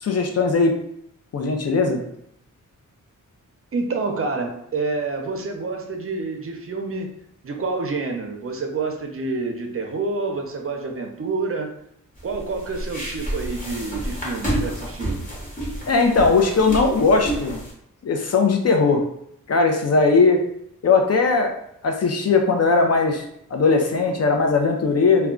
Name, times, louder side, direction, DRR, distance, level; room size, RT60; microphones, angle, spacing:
voice 1, 0.0-0.7 1.3-2.0 15.9-17.6 18.0-19.0 19.5-20.4 20.8-21.5 21.8-23.2 23.5-25.3, left 4 dB, 50° left, 3 dB, 0.5 m, -19 dB
voice 2, 3.7-7.2 7.4-11.7 12.2-15.2, right 3 dB, 45° right, 3 dB, 0.6 m, -28 dB
sound 1, 12.2-17.7, right 1 dB, 25° left, 1.1 m, -29 dB
2.2 x 2.2 x 3.7 m, 0.71 s
cardioid pair, 80°, 33 cm